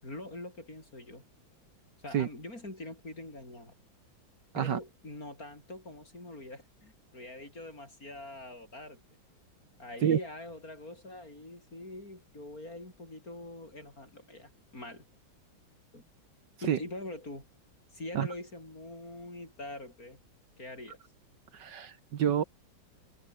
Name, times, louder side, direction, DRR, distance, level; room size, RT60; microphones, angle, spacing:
voice 1, 0.0-1.2 2.0-3.7 4.5-9.0 9.8-15.0 15.9-16.0 16.6-17.5 17.9-20.2 20.6-21.0, left 2 dB, 45° left, 8.2 m, -44 dB
voice 2, 21.5-22.4, right 9 dB, 65° right, 1.7 m, -28 dB
omnidirectional pair, 2.1 m